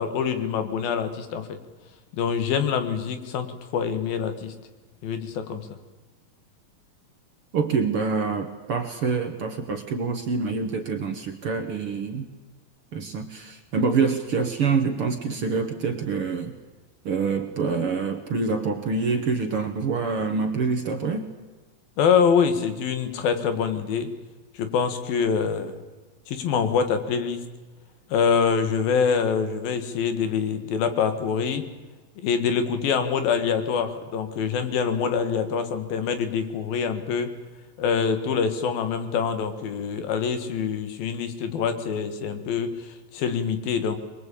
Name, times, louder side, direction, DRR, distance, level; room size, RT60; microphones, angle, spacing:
voice 1, 0.0-1.6 2.1-4.5 5.0-5.7 22.0-24.1 24.6-25.8 26.3-27.5 28.1-31.7 32.2-37.4 37.8-44.0, left 6 dB, 90° left, 9 dB, 3.6 m, -25 dB
voice 2, 7.5-12.3 12.9-16.5 17.1-21.3, right 4 dB, 55° right, 6 dB, 1.7 m, -26 dB
23.0 x 22.0 x 8.6 m, 1.3 s
omnidirectional pair, 4.0 m